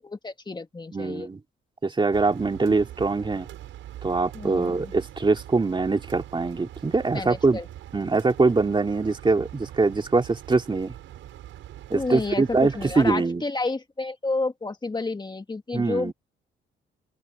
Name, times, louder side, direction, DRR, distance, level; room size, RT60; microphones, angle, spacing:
voice 1, 0.0-1.3 2.6-2.7 4.3-4.9 7.1-7.7 11.9-16.1, left 3 dB, 20° left, 2.2 m, -30 dB
voice 2, 0.9-1.4 1.8-3.5 4.0-7.6 7.9-10.9 11.9-13.4 15.7-16.1, right 3 dB, 25° right, 2.7 m, -23 dB
sound 1, 2.1-13.2, right 13 dB, 85° right, 6.9 m, -43 dB
open air
cardioid pair, 90°, 20 cm